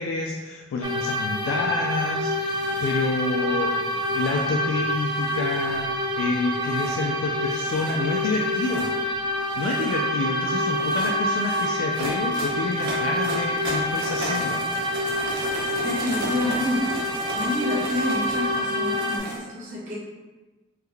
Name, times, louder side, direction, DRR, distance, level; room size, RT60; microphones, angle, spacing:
voice 1, 0.0-8.9 9.6-14.6, left 3 dB, 80° left, -1 dB, 0.3 m, -28 dB
sound 1, 0.8-19.2, left 1 dB, 25° right, 0.3 m, -27 dB
sound 2, 2.5-3.0 3.9-4.4 5.1-5.9 6.6-6.9 7.5-7.9 8.5-8.9 9.4-10.0 10.7-19.4, right 1 dB, 85° right, 0.8 m, -36 dB
voice 2, 15.8-17.0 17.3-19.9, left 1 dB, 40° right, -7 dB, 1.0 m, -28 dB
3.5 x 2.2 x 3.2 m, 1.2 s
head